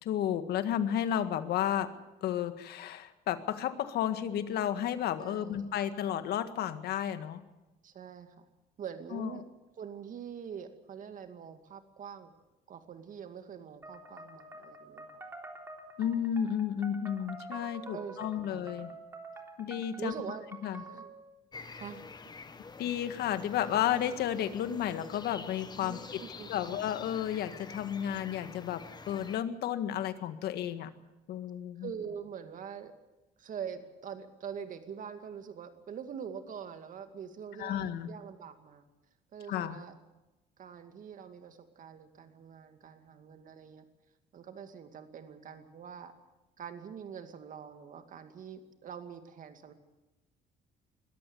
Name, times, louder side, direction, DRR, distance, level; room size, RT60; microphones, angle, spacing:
voice 1, 0.0-1.9 2.2-7.4 9.1-9.3 16.0-18.9 19.6-20.1 20.6-20.8 22.8-26.2 26.5-30.9 31.3-31.9 37.6-38.1 39.5-39.8, left 10 dB, 70° left, 10 dB, 1.7 m, -32 dB
voice 2, 5.2-5.9 7.8-8.5 8.8-9.4 9.8-12.3 12.7-15.2 17.2-17.3 17.9-18.7 20.0-20.5 20.7-21.1 21.7-22.0 25.8-27.0 31.8-32.9 33.4-38.9 39.3-39.9 40.6-43.9 44.3-46.1 46.6-49.7, right 7 dB, 50° right, 7 dB, 2.4 m, -44 dB
sound 1, 13.8-21.2, right 3 dB, 15° right, 3.5 m, -47 dB
sound 2, 21.5-29.4, left 4 dB, 25° left, 1.3 m, -47 dB
21.5 x 14.0 x 9.5 m, 1.0 s
cardioid pair, 110°, 17 cm